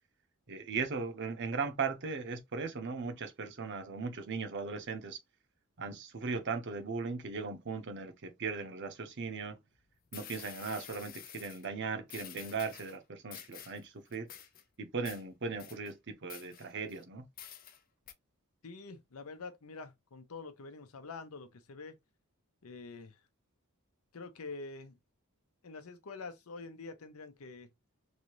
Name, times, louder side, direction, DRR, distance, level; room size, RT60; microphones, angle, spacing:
voice 1, 0.5-5.2 5.8-9.6 10.1-14.3 14.8-17.2, right 4 dB, 55° right, 0.7 m, -38 dB
sound 1, 9.7-9.8 10.1-11.7 12.1-13.0 13.3-13.8 14.1-14.6 15.0-15.2 15.6-15.9 16.3-17.0 17.4-17.8 18.1-18.2, left 10 dB, 40° left, 0.5 m, -49 dB
voice 2, 18.6-22.0 22.6-23.1 24.1-25.0 25.6-27.7, left 4 dB, 80° left, 0.7 m, -46 dB
3.2 x 2.6 x 3.0 m
head